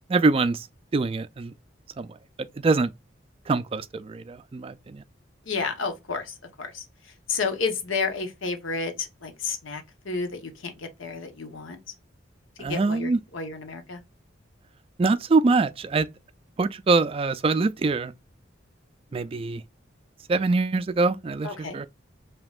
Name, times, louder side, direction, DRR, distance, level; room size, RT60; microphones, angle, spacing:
voice 1, 0.1-0.7 0.9-1.5 2.0-2.9 3.5-5.0 12.6-13.2 15.0-16.1 16.6-18.1 19.1-19.6 20.3-21.9, right 3 dB, 30° right, 0.3 m, -24 dB
voice 2, 5.5-6.8 7.3-11.8 12.6-14.0 21.4-21.8, left 4 dB, 85° left, 1.0 m, -31 dB
5.3 x 2.9 x 2.4 m
head